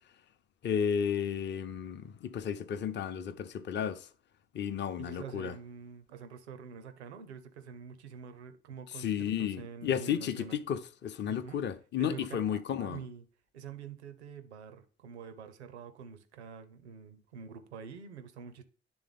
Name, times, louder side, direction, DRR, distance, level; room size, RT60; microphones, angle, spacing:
voice 1, 0.6-4.1 4.5-5.5 9.0-13.0, left 8 dB, 35° left, 0.6 m, -33 dB
voice 2, 5.0-10.6 11.3-11.6 12.0-13.3 13.5-18.6, right 6 dB, 85° right, 0.6 m, -46 dB
9.5 x 3.4 x 3.4 m
figure-of-eight pair, 45°, 33 cm